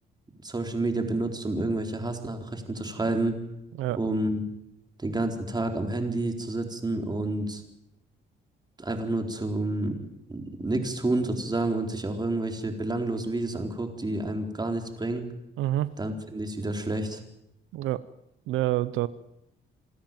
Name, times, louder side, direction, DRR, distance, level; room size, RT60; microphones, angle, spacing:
voice 1, 0.4-3.4 4.0-4.4 5.0-7.6 8.8-10.0 10.3-15.3 16.0-17.2, right 2 dB, 20° right, 5 dB, 4.1 m, -29 dB
voice 2, 15.6-15.9 17.7-18.0 18.5-19.1, right 15 dB, 90° right, 16 dB, 0.7 m, -27 dB
27.0 x 13.0 x 9.2 m, 0.82 s
cardioid pair, 90°, 20 cm